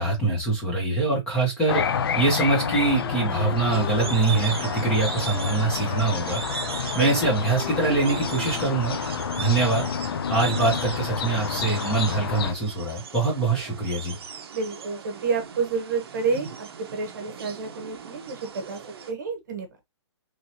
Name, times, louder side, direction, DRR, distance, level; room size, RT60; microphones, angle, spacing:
voice 1, 0.0-6.6 6.9-9.0 9.4-9.9 10.3-14.1, right 3 dB, 5° left, 0.7 m, -24 dB
sound 1, 1.7-12.5, left 7 dB, 55° left, 0.4 m, -29 dB
Wind instrument woodwind instrument, 2.5-5.0 5.3-9.4, left 5 dB, 40° left, 0.8 m, -40 dB
sound 2, 3.7-19.1, right 7 dB, 60° right, 0.7 m, -38 dB
voice 2, 7.0-7.3 14.5-18.8 19.1-19.7, right 4 dB, 40° right, 0.9 m, -29 dB
3.1 x 2.8 x 2.7 m
hypercardioid pair, 170°, 15 cm